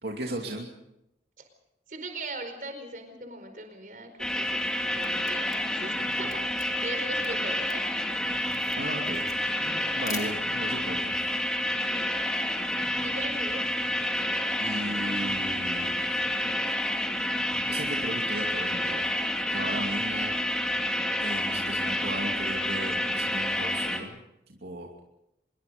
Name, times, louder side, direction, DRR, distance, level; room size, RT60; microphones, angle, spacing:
voice 1, 0.0-0.7 8.8-9.3 9.6-11.3 14.6-16.0 16.7-16.9 17.7-19.1 19.5-20.4 21.2-25.0, right 1 dB, 75° right, 0 dB, 2.6 m, -36 dB
voice 2, 1.9-8.0 12.0-12.5 13.0-13.7, right 2 dB, 50° right, 7 dB, 4.8 m, -40 dB
sound 1, 4.2-24.0, left 1 dB, 5° left, 2.5 m, -29 dB
Camera, 5.0-10.8, left 5 dB, 20° left, 1.7 m, -45 dB
25.5 x 22.5 x 5.3 m, 0.84 s
head